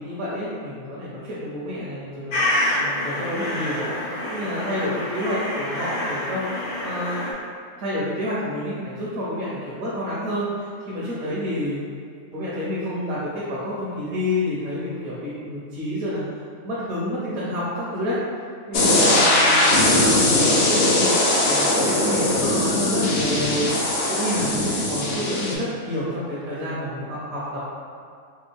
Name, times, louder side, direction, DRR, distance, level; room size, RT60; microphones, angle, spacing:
voice 1, 0.0-2.3 2.8-7.4 7.8-11.8 12.3-16.2 16.6-18.2 18.7-27.7, left 1 dB, 70° right, -8 dB, 1.1 m, -29 dB
sound 1, 2.3-7.3, left 1 dB, 90° left, 1.2 m, -27 dB
sound 2, 18.7-25.5, left 1 dB, 60° left, 0.6 m, -20 dB
3.4 x 2.3 x 3.3 m, 2.3 s
omnidirectional pair, 1.5 m